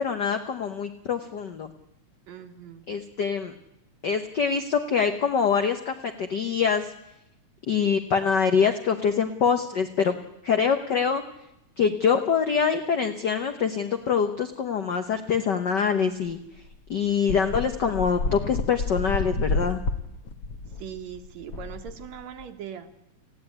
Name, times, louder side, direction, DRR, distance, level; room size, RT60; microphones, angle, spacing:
voice 1, 0.0-1.7 2.9-3.5 4.0-6.9 7.7-10.1 10.4-11.2 11.8-16.4 16.9-19.8, left 6 dB, 75° left, 8 dB, 1.0 m, -24 dB
voice 2, 2.3-2.8 20.7-22.9, right 9 dB, 70° right, 7 dB, 2.7 m, -40 dB
sound 1, 16.3-16.4 16.6-16.7 17.3-22.5, left 3 dB, 50° left, 1.8 m, -30 dB
19.5 x 15.5 x 9.8 m, 0.84 s
omnidirectional pair, 3.4 m